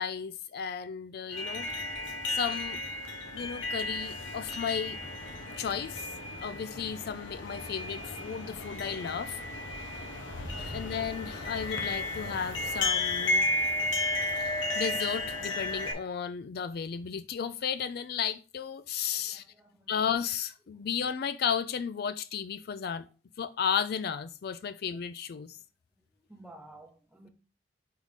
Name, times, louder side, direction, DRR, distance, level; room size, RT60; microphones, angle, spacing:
voice 1, 0.0-1.7 2.3-2.8 3.3-5.0 5.6-6.1 6.4-9.4 10.6-13.5 14.3-19.4 19.9-23.1 23.4-25.6, left 7 dB, 55° left, 0.4 m, -34 dB
sound 1, 1.3-15.9, left 2 dB, 85° left, 1.2 m, -33 dB
voice 2, 19.1-19.9 20.7-20.8 26.3-27.3, right 1 dB, 5° right, 0.9 m, -54 dB
4.8 x 4.1 x 5.0 m
head